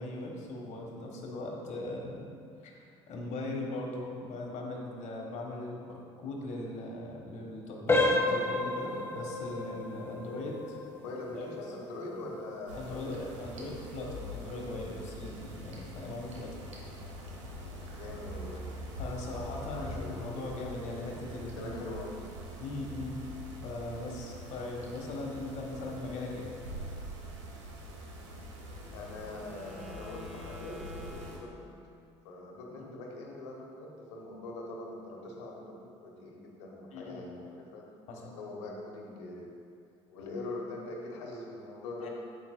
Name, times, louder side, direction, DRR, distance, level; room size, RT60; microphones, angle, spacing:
voice 1, 0.0-2.3 2.6-10.8 11.3-11.4 12.7-16.6 19.0-21.8 22.6-23.2 23.6-26.5 32.8-33.0 36.9-37.3 38.1-38.3 42.0-42.1, left 2 dB, 55° left, 0 dB, 1.4 m, -39 dB
sound 1, 7.9-18.5 18.9-19.1 19.7-19.8 20.3-20.5, left 2 dB, 15° left, 1.1 m, -34 dB
voice 2, 10.9-13.6 18.0-18.7 19.6-21.1 21.5-22.2 28.9-31.7 32.2-37.9 38.3-39.5 40.1-42.1, left 2 dB, 75° left, -1 dB, 1.1 m, -43 dB
sound 2, 12.7-31.4, equal, 80° right, 0.9 m, -44 dB
Wind instrument woodwind instrument, 28.6-32.2, left 2 dB, 5° right, 1.4 m, -50 dB
8.6 x 7.3 x 2.3 m, 2.4 s
hypercardioid pair, 55°, 15 cm